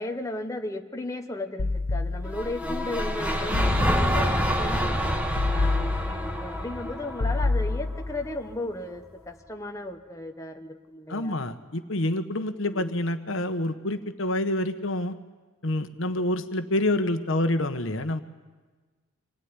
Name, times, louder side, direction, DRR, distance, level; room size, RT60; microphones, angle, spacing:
voice 1, 0.0-5.0 5.5-11.4 12.7-13.0, left 1 dB, 15° left, 3 dB, 1.1 m, -35 dB
step bass, 1.6-2.6 3.5-4.4 5.4-6.4 7.2-8.3, left 2 dB, 85° left, 1.0 m, -27 dB
sound 1, 2.3-8.5, equal, 5° right, 1.5 m, -28 dB
voice 2, 11.1-15.1 15.6-18.2, left 1 dB, 65° left, 8 dB, 1.3 m, -27 dB
26.0 x 17.5 x 9.7 m, 1.4 s
head